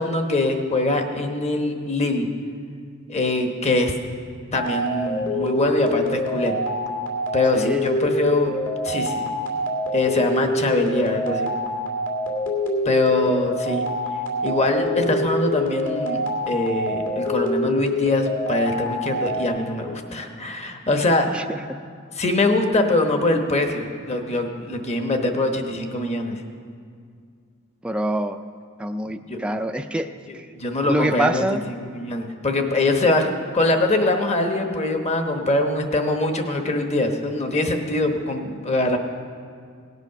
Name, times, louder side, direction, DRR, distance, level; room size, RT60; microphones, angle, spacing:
voice 1, 0.0-2.3 3.1-3.9 4.5-6.5 7.3-8.6 8.8-9.3 9.9-11.5 12.8-13.8 14.4-21.3 22.2-26.4 29.1-29.4 30.5-31.4 31.9-39.0, left 2 dB, 30° left, 5 dB, 1.0 m, -23 dB
sound 1, 4.5-19.5, left 1 dB, 70° left, 2.1 m, -26 dB
voice 2, 7.5-7.9 21.3-21.8 27.8-28.4 28.8-30.5 30.9-31.6, right 1 dB, 5° right, 6 dB, 0.3 m, -26 dB
18.0 x 8.2 x 5.8 m, 2.2 s
head